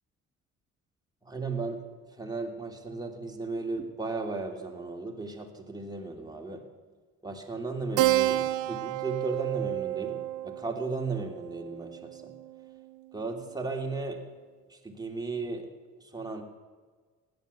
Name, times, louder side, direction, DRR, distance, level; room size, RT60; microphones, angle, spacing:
voice 1, 1.2-1.8 2.1-6.6 7.2-12.4 13.1-14.2 14.7-15.7 16.0-16.4, right 3 dB, 15° right, 2 dB, 2.8 m, -35 dB
Keyboard (musical), 8.0-12.9, right 16 dB, 85° right, 0.6 m, -30 dB
16.5 x 10.5 x 6.9 m, 1.5 s
cardioid pair, 90°, 30 cm